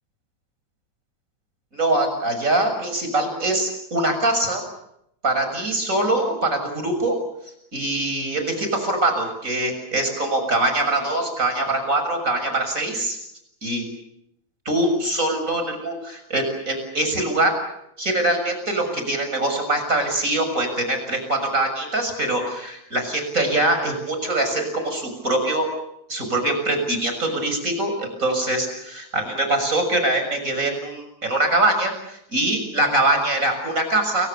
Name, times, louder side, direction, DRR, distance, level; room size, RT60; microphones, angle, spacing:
voice 1, 1.7-4.6 5.2-7.2 7.7-13.2 13.6-13.9 14.7-17.6 18.0-25.7 26.1-34.3, right 2 dB, 25° right, 6 dB, 6.9 m, -23 dB
29.5 x 25.0 x 6.8 m, 0.78 s
omnidirectional pair, 3.4 m